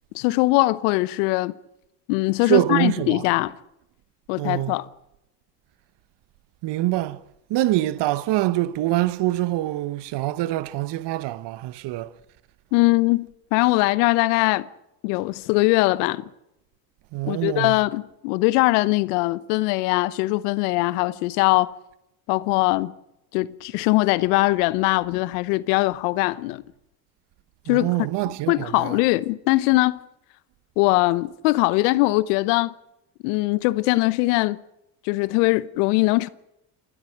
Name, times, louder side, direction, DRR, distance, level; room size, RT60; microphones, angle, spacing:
voice 1, 0.1-1.5 2.1-3.5 4.3-4.9 12.7-14.7 15.0-16.2 17.3-21.7 22.3-22.9 23.3-26.6 27.7-27.9 28.5-30.0 30.8-32.7 33.2-34.6 35.0-36.3, left 21 dB, 75° left, 1.0 m, -21 dB
voice 2, 2.5-3.2 4.4-4.8 6.6-7.2 7.5-12.1 17.1-17.8 27.7-29.0, right 16 dB, 60° right, 1.2 m, -24 dB
28.5 x 12.5 x 9.2 m
hypercardioid pair, 65°, 47 cm